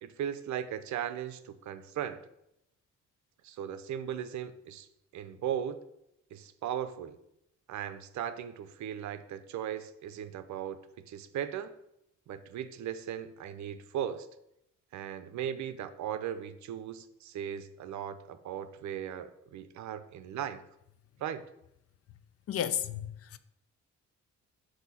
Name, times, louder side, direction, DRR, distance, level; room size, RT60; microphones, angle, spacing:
voice 1, 0.0-2.2 3.4-4.9 5.1-5.8 6.3-7.2 7.7-10.8 11.1-11.7 12.3-14.3 14.9-20.6 21.2-21.4, right 9 dB, 70° right, 0.6 m, -37 dB
voice 2, 22.5-23.1, left 10 dB, 50° left, 0.5 m, -31 dB
8.0 x 2.8 x 5.6 m
cardioid pair, 90°, 30 cm